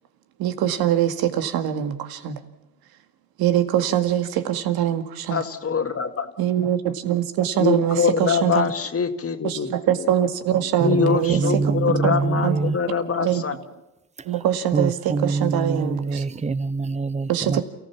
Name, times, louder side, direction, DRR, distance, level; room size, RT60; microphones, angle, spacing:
voice 1, 0.4-2.4 3.4-5.4 6.4-8.6 9.4-11.7 12.0-12.2 12.4-12.7 13.2-13.4 14.2-16.2 17.3-17.6, right 11 dB, 75° right, 2.1 m, -23 dB
voice 2, 5.3-6.3 7.6-9.7 10.8-13.6, left 6 dB, 40° left, 2.1 m, -24 dB
voice 3, 10.8-12.8 14.2-14.3 14.7-17.6, right 4 dB, 20° right, 0.7 m, -25 dB
28.5 x 15.5 x 7.3 m
supercardioid pair, 75°, 37 cm